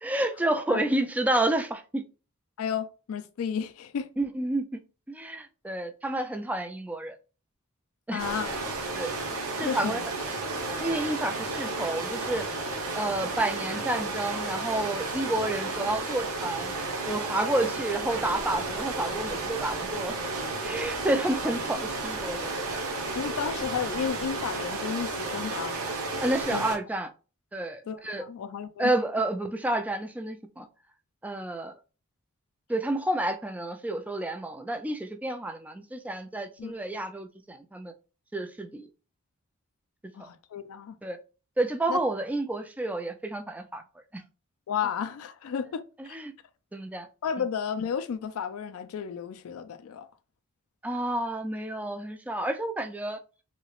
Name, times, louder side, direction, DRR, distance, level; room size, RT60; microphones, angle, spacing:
voice 1, 0.0-2.0 4.2-4.8 5.1-7.2 8.1-8.2 8.9-9.1 9.6-10.0 10.8-12.5 12.9-16.7 17.0-20.2 20.6-22.5 26.2-27.1 27.5-28.2 28.8-30.7 31.2-31.7 32.7-37.9 38.3-38.9 40.2-40.3 41.0-41.2 41.6-43.8 44.1-44.2 46.0-46.3 46.7-47.1 50.8-53.2, right 1 dB, 5° right, 0.3 m, -30 dB
voice 2, 2.6-4.1 8.1-8.5 9.6-10.0 23.1-25.7 26.5-26.6 27.9-28.9 36.6-36.7 40.1-41.0 41.9-42.0 44.7-46.2 47.2-50.1, left 7 dB, 70° left, 0.3 m, -32 dB
sound 1, 8.2-26.8, right 3 dB, 80° right, 0.9 m, -32 dB
3.1 x 2.9 x 2.3 m
head